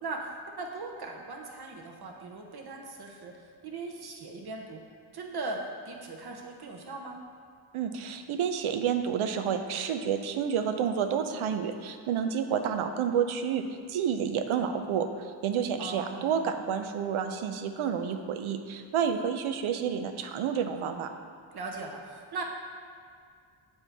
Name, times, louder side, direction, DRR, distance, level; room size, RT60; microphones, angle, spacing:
voice 1, 0.0-3.3 3.6-4.8 5.1-5.6 5.8-7.2 15.8-16.5 21.5-22.4, right 3 dB, 50° right, 1 dB, 1.0 m, -39 dB
voice 2, 7.7-21.1, right 7 dB, 85° right, 7 dB, 0.6 m, -30 dB
7.3 x 4.3 x 3.4 m, 2.2 s
cardioid pair, 70°, 48 cm